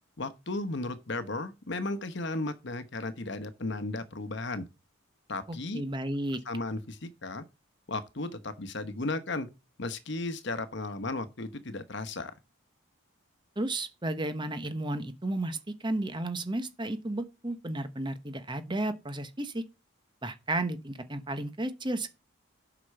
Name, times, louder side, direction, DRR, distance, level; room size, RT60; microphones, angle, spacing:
voice 1, 0.2-4.6 5.3-5.8 6.5-7.4 7.9-9.5 9.8-12.3, left 2 dB, 55° left, 1.1 m, -35 dB
voice 2, 5.5-6.4 13.6-19.6 20.2-22.1, right 1 dB, 20° right, 1.0 m, -33 dB
8.2 x 6.0 x 6.6 m
head